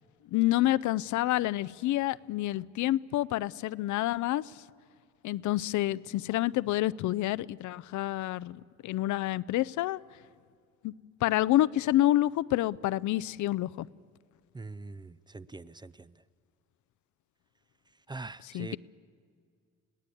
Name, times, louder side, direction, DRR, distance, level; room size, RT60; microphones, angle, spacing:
voice 1, 0.3-4.5 5.2-10.0 10.8-10.9 11.2-13.9 18.4-18.8, left 15 dB, 75° left, 19 dB, 0.5 m, -28 dB
voice 2, 14.5-16.1 18.1-18.8, right 3 dB, 15° right, 17 dB, 0.4 m, -43 dB
21.5 x 17.0 x 8.5 m, 2.1 s
cardioid pair, 90°, 30 cm